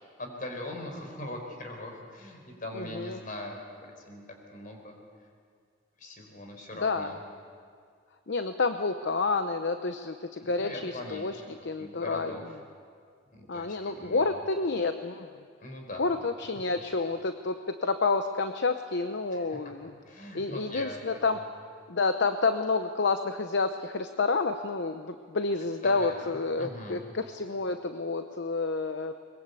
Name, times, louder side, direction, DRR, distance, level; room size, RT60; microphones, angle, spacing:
voice 1, 0.2-4.2 4.5-5.0 6.0-7.2 10.4-12.6 13.3-14.4 15.6-16.1 19.3-19.7 20.0-21.4 25.8-27.0, left 1 dB, 45° left, 2 dB, 4.7 m, -41 dB
voice 2, 2.7-3.2 6.8-7.1 8.3-11.4 11.6-12.3 13.5-15.3 16.0-19.9 20.3-21.4 21.9-29.1, left 3 dB, 65° left, 8 dB, 0.8 m, -29 dB
22.5 x 21.5 x 8.3 m, 2.1 s
head